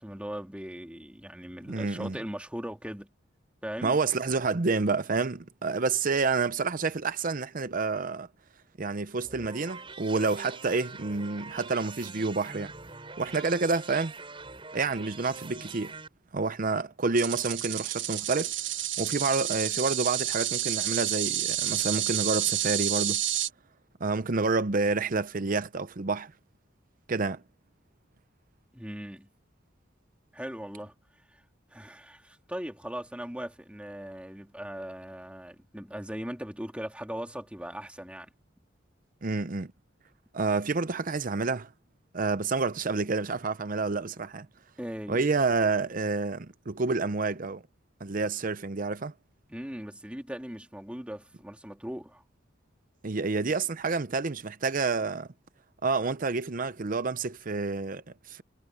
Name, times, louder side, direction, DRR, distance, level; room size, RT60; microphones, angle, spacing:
voice 1, 0.0-3.1 3.6-4.0 28.7-29.3 30.3-30.9 31.3-31.4 31.7-38.3 44.8-45.2 49.5-52.2, equal, 5° right, 2.6 m, -39 dB
voice 2, 1.7-2.2 3.8-8.3 8.8-12.7 13.2-14.1 14.7-16.0 16.3-18.5 19.0-23.2 24.0-26.3 27.1-27.4 39.2-39.7 40.3-41.7 42.1-44.5 45.1-47.6 48.0-49.1 53.0-55.3 55.8-58.4, right 4 dB, 45° right, 0.7 m, -29 dB
sound 1, 9.2-16.1, right 4 dB, 30° right, 7.2 m, -44 dB
sound 2, 17.2-23.5, right 12 dB, 85° right, 1.2 m, -30 dB
head